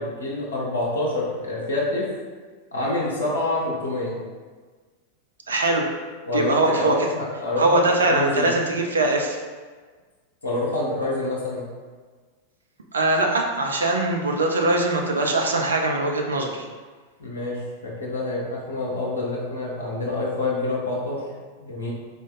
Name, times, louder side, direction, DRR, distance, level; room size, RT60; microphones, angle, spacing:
voice 1, 0.0-2.1 2.7-4.2 6.3-8.5 10.4-11.7 17.2-21.2 21.6-21.9, left 2 dB, 70° left, -5 dB, 0.8 m, -27 dB
voice 2, 5.5-5.9 6.3-6.9 7.6-9.4 12.9-16.6, right 2 dB, 70° right, 2 dB, 0.5 m, -21 dB
3.7 x 2.6 x 3.6 m, 1.4 s
figure-of-eight pair, 90°, 0 cm